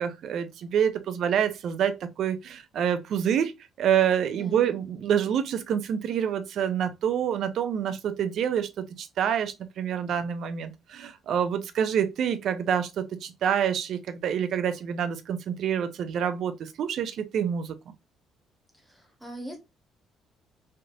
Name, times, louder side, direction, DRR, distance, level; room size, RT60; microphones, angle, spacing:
voice 1, 0.0-3.5 3.8-17.7, right 8 dB, 60° right, 0.5 m, -27 dB
voice 2, 4.2-4.8 18.8-19.6, right 1 dB, 5° right, 1.2 m, -41 dB
3.3 x 2.5 x 2.6 m
cardioid pair, 120°, 0 cm